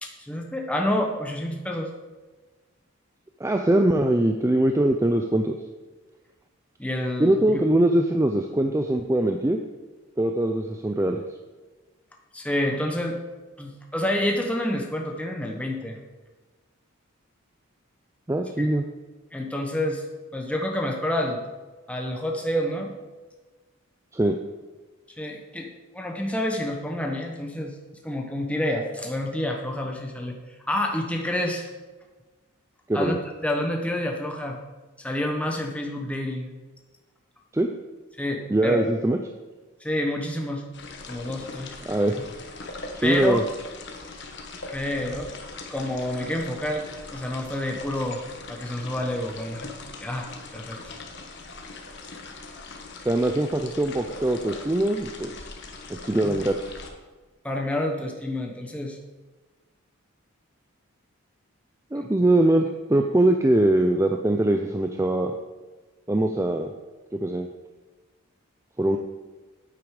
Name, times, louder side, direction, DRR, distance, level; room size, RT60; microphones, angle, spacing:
voice 1, 0.0-1.9 6.8-7.6 12.3-13.2 13.6-16.0 18.6-18.7 19.3-20.0 20.3-21.4 21.9-22.9 25.2-27.7 28.0-30.4 30.7-31.7 32.9-34.6 35.0-36.5 38.2-38.8 39.8-40.6 41.1-41.8 43.0-43.4 44.7-45.3 45.7-46.8 47.1-48.2 48.5-49.7 50.0-50.8 56.2-56.4 57.4-59.0 61.9-62.1, left 1 dB, 5° left, 1 dB, 1.0 m, -28 dB
voice 2, 3.4-5.6 7.2-9.6 10.2-11.2 18.3-18.8 24.1-24.4 32.9-33.2 37.5-37.7 38.5-39.2 41.9-42.1 43.0-43.4 53.0-55.3 56.0-56.7 61.9-65.3 66.1-66.7 67.2-67.5 68.8-69.0, right 1 dB, 15° right, 4 dB, 0.4 m, -22 dB
sound 1, 40.7-56.9, left 3 dB, 50° left, 1.3 m, -41 dB
9.3 x 8.6 x 4.9 m, 1.2 s
head